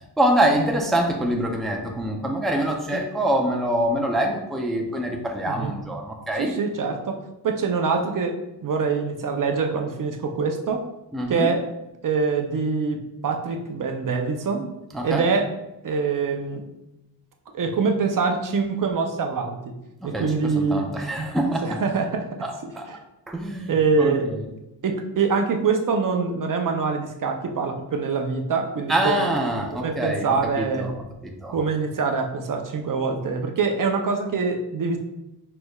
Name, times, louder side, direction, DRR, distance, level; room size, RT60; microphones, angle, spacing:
voice 1, 0.2-6.5 11.1-11.5 14.9-15.3 20.0-21.8 22.4-22.9 23.3-24.4 28.9-30.9 31.2-31.6, right 1 dB, ahead, 1 dB, 0.4 m, -25 dB
voice 2, 6.4-7.2 7.4-8.3 8.6-10.8 11.3-11.6 12.0-13.0 13.2-14.7 15.0-15.5 15.8-16.6 17.5-19.7 20.0-20.9 21.6-22.3 22.9-23.0 23.7-24.3 24.8-29.3 29.8-30.9 31.5-35.0, right 4 dB, 50° right, 4 dB, 0.6 m, -24 dB
6.1 x 3.3 x 2.3 m, 0.93 s
wide cardioid pair, 115°, 41 cm